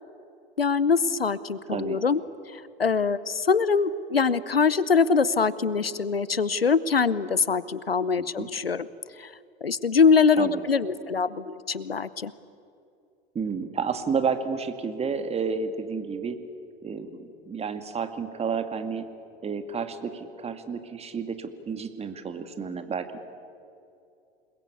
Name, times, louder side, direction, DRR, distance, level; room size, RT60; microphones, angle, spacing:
voice 1, 0.6-2.2 2.5-8.9 9.2-9.3 9.6-12.3, left 5 dB, 90° left, 18 dB, 0.8 m, -23 dB
voice 2, 1.7-2.0 8.2-8.5 10.4-10.6 13.3-16.4 16.8-19.1 19.4-23.2, right 5 dB, 20° right, 8 dB, 2.2 m, -31 dB
28.5 x 21.0 x 8.3 m, 2.6 s
figure-of-eight pair, 85°, 29 cm